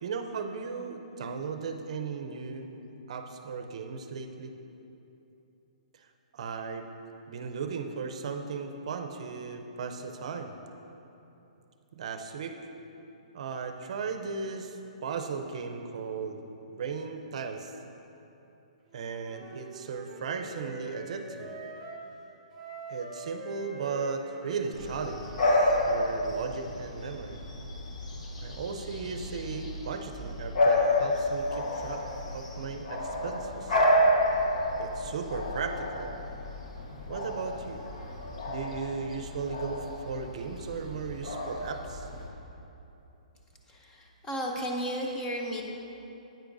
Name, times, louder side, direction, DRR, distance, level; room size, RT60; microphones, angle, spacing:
voice 1, 0.0-2.7 3.1-4.5 5.9-6.1 6.3-6.9 7.3-10.5 11.9-12.6 13.3-16.4 16.7-17.7 18.9-21.5 22.9-27.4 28.4-32.0 32.3-33.8 34.8-36.1 37.1-37.8 38.5-42.1, right 5 dB, 55° right, 6 dB, 0.6 m, -36 dB
Wind instrument woodwind instrument, 18.9-22.0 22.5-25.8, right 2 dB, 5° right, 1.3 m, -44 dB
Bark / Bird vocalization bird call bird song, 24.7-42.3, left 1 dB, 60° left, 1.3 m, -30 dB
voice 2, 43.7-45.6, equal, 15° left, 0 dB, 0.7 m, -34 dB
9.8 x 9.0 x 2.6 m, 3.0 s
hypercardioid pair, 160°, 4 cm